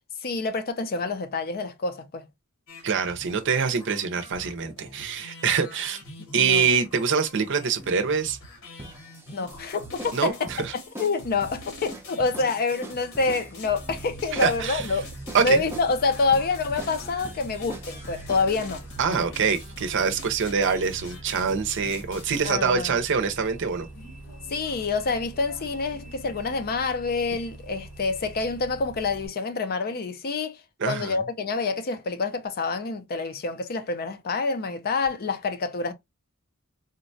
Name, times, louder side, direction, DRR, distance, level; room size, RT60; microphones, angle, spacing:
voice 1, 0.2-2.3 6.4-6.7 9.3-10.5 11.0-15.0 15.4-18.8 22.4-23.0 24.5-35.9, left 4 dB, 45° left, 0.5 m, -27 dB
sound 1, 2.7-22.4, left 1 dB, 65° left, 1.1 m, -45 dB
voice 2, 2.8-6.0 6.3-8.4 10.1-10.7 14.3-14.9 15.3-15.6 19.0-23.9 30.8-31.2, right 6 dB, 55° right, 0.6 m, -25 dB
sound 2, 8.8-18.7, right 1 dB, 10° right, 0.5 m, -43 dB
Bus, 13.6-29.3, right 1 dB, 90° left, 1.2 m, -43 dB
3.8 x 2.2 x 2.6 m
head